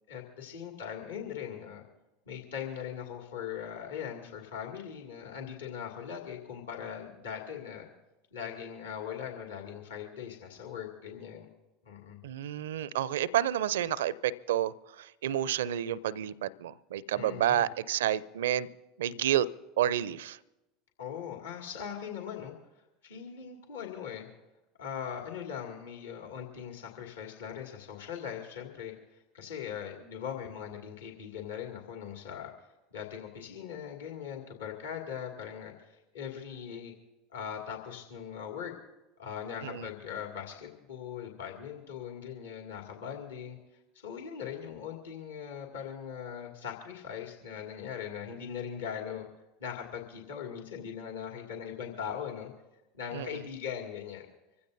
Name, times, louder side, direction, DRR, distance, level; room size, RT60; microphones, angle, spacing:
voice 1, 0.1-1.8 2.3-7.9 8.3-11.5 11.8-12.2 17.1-17.6 21.0-22.5 23.0-24.3 24.8-32.5 32.9-36.9 37.3-38.7 39.2-43.6 44.0-49.2 49.6-52.5 52.9-54.3, left 8 dB, 70° left, 0 dB, 2.3 m, -40 dB
voice 2, 12.2-18.7 19.0-19.5 19.8-20.4 39.6-39.9 53.1-53.4, right 11 dB, 70° right, 22 dB, 0.5 m, -30 dB
25.5 x 15.5 x 2.7 m, 1.0 s
figure-of-eight pair, 80°, 0 cm